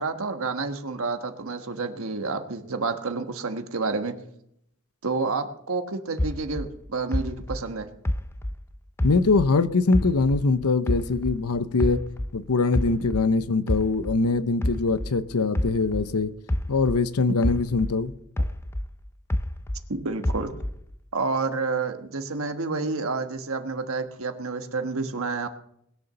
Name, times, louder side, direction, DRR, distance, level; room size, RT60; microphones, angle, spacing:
voice 1, 0.0-4.1 5.0-7.9 19.9-20.5 21.1-25.5, right 3 dB, 65° right, 1.3 m, -29 dB
sound 1, 6.2-9.6 9.9-12.4 12.7-17.1 17.4-19.9 20.2-20.9, left 1 dB, 10° left, 0.4 m, -29 dB
voice 2, 9.0-12.0 12.3-16.3 16.7-18.1, left 3 dB, 90° left, 0.7 m, -23 dB
20.5 x 6.9 x 6.6 m
head